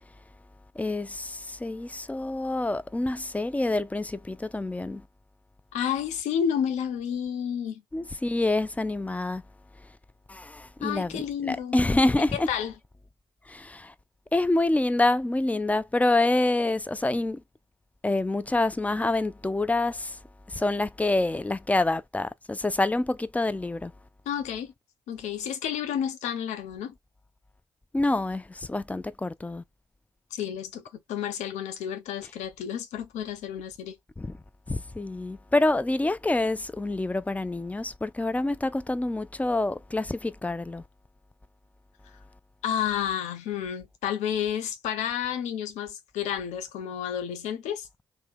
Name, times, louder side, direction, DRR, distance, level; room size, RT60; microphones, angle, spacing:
voice 1, 0.8-5.0 7.9-9.4 10.3-12.5 13.5-13.9 14.3-17.4 18.0-20.2 20.5-23.9 27.9-29.6 34.2-34.3 34.7-40.8, left 2 dB, 10° left, 0.4 m, -27 dB
voice 2, 5.7-7.8 10.8-11.8 12.3-12.7 24.3-24.7 25.1-26.9 30.3-34.0 42.6-47.9, left 9 dB, 70° left, 0.6 m, -31 dB
2.8 x 2.1 x 3.5 m
hypercardioid pair, 45°, 12 cm